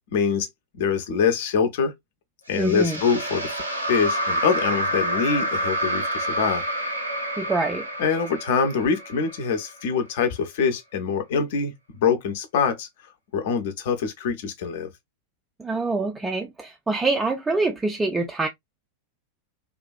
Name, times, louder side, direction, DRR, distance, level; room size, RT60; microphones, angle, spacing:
voice 1, 0.1-0.5 0.8-1.9 2.5-3.5 3.9-6.6 8.0-11.7 12.0-12.9 13.3-14.9, left 6 dB, 55° left, 0.6 m, -24 dB
voice 2, 2.5-3.0 7.4-7.9 15.6-18.5, right 2 dB, 15° right, 0.3 m, -25 dB
sound 1, 2.5-9.8, right 1 dB, 90° right, 0.6 m, -28 dB
2.5 x 2.3 x 2.3 m
figure-of-eight pair, 90°, 0 cm